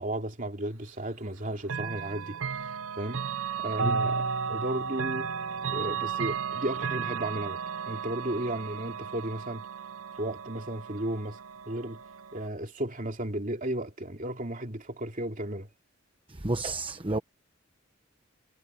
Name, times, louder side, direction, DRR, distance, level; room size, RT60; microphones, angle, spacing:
voice 1, 0.0-3.2 3.6-5.3 5.7-7.6 7.9-9.7 10.2-11.4 11.7-12.0 12.3-15.7, right 1 dB, 40° right, 2.8 m, -34 dB
Chime / Clock, 1.6-12.5, right 6 dB, 85° right, 0.7 m, -34 dB
voice 2, 16.4-17.2, right 2 dB, 25° right, 1.0 m, -30 dB
head